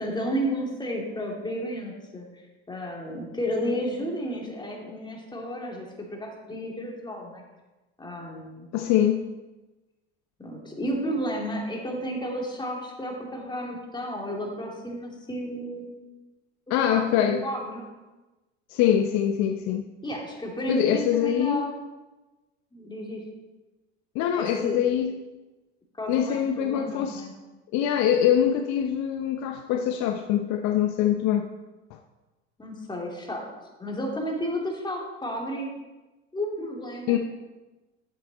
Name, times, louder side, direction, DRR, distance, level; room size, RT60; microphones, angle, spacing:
voice 1, 0.0-7.4 8.0-8.7 10.4-15.9 16.8-17.8 20.0-21.8 22.7-23.2 24.4-24.8 26.0-27.3 32.6-33.4 33.8-35.7 36.3-37.2, equal, 15° left, -1 dB, 2.8 m, -32 dB
voice 2, 8.7-9.3 16.7-17.4 18.7-19.8 20.7-21.6 24.1-25.1 26.1-27.3 27.7-31.5 31.9-32.0 37.1-37.2, left 10 dB, 55° left, 6 dB, 0.7 m, -24 dB
9.1 x 7.6 x 4.2 m, 1.1 s
hypercardioid pair, 70°, 33 cm